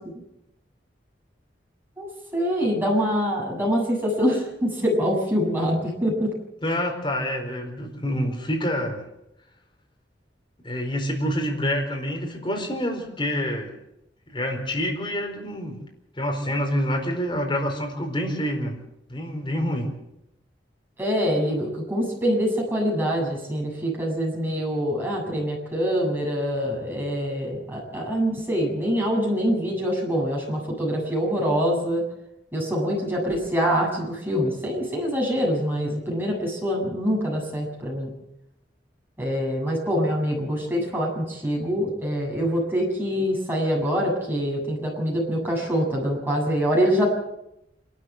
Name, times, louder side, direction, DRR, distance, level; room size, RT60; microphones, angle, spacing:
voice 1, 2.0-6.3 21.0-32.0 32.5-38.1 39.2-47.1, equal, 10° right, -2 dB, 8.0 m, -25 dB
voice 2, 6.6-9.0 10.6-13.7 14.3-15.8 16.2-18.8 19.1-19.9, equal, 25° left, 2 dB, 4.5 m, -27 dB
26.5 x 13.0 x 7.9 m, 0.84 s
head